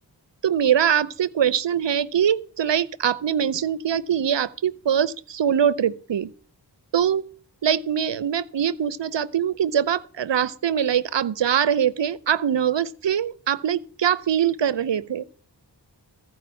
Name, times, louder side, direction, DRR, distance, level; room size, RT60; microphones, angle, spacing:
voice 1, 0.4-6.3 6.9-7.2 7.6-15.2, right 9 dB, 75° right, 0.7 m, -23 dB
15.0 x 5.0 x 8.2 m
wide cardioid pair, 50°, 43 cm